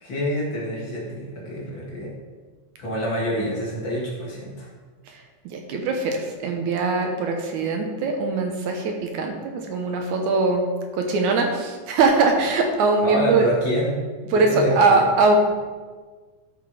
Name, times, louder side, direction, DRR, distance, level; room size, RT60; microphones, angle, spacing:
voice 1, 0.0-2.1 2.8-4.7 13.0-13.9 14.3-15.1, equal, 45° left, -4 dB, 2.2 m, -27 dB
voice 2, 5.1-10.6 10.9-13.5 14.3-15.4, right 3 dB, 70° right, 3 dB, 2.4 m, -21 dB
13.0 x 5.8 x 5.0 m, 1.4 s
omnidirectional pair, 3.7 m